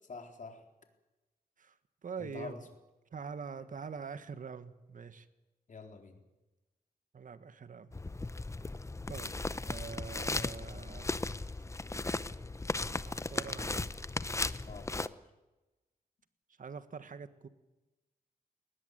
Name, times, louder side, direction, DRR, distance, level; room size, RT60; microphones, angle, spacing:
voice 1, 0.1-0.6 2.2-2.7 3.6-3.7 5.7-6.2 14.7-15.2, left 4 dB, 55° left, 4 dB, 4.0 m, -47 dB
voice 2, 2.0-2.6 3.1-5.3 7.1-7.9 9.1-9.3 9.6-11.1 13.0-14.1 16.6-17.5, right 5 dB, 60° right, 11 dB, 1.6 m, -44 dB
sound 1, 7.9-15.1, left 2 dB, 20° left, 0.8 m, -36 dB
20.5 x 19.5 x 9.3 m, 1.1 s
wide cardioid pair, 115°, 16 cm